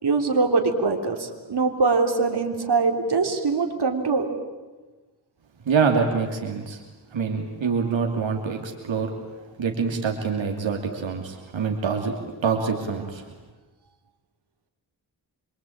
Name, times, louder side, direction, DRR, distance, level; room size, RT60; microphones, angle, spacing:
voice 1, 0.0-4.3, right 4 dB, 60° right, 4 dB, 3.6 m, -23 dB
voice 2, 5.6-6.8 7.1-9.1 9.6-12.1 12.4-13.2, right 5 dB, 80° right, 2 dB, 2.9 m, -25 dB
27.0 x 24.0 x 8.8 m, 1.2 s
cardioid pair, 60°, 45 cm